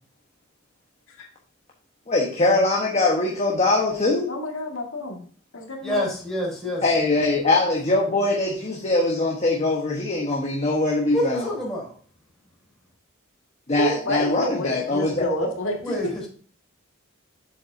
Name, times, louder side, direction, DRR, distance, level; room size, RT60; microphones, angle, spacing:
voice 1, 2.1-4.3 6.8-11.5 13.7-15.2, left 2 dB, 35° left, 1.2 m, -22 dB
voice 2, 4.3-5.2 5.5-6.1 13.8-16.1, equal, 75° left, 2.0 m, -28 dB
voice 3, 5.8-6.9 11.1-12.0 15.8-16.3, left 1 dB, ahead, 3.7 m, -27 dB
7.8 x 7.3 x 2.7 m
head